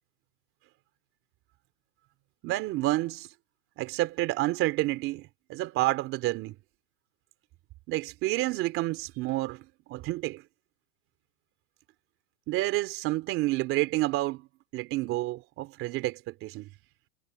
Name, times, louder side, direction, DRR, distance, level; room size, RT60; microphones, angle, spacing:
voice 1, 2.4-3.3 3.8-6.6 7.9-10.4 12.5-14.5 14.7-16.7, right 18 dB, 30° right, 3.4 m, -29 dB
supercardioid pair, 160°, 43 cm